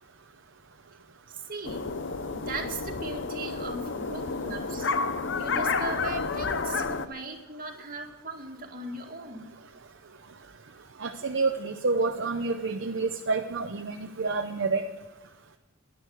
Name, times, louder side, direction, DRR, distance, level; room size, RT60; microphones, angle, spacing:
voice 1, 1.3-1.9 2.3-4.9 5.3-9.5, right 3 dB, 45° right, 1 dB, 2.2 m, -38 dB
sound 1, 1.6-7.1, left 4 dB, 65° left, 0.7 m, -30 dB
voice 2, 11.0-14.8, right 3 dB, 65° right, 5 dB, 0.8 m, -28 dB
11.5 x 11.0 x 7.8 m, 1.0 s
head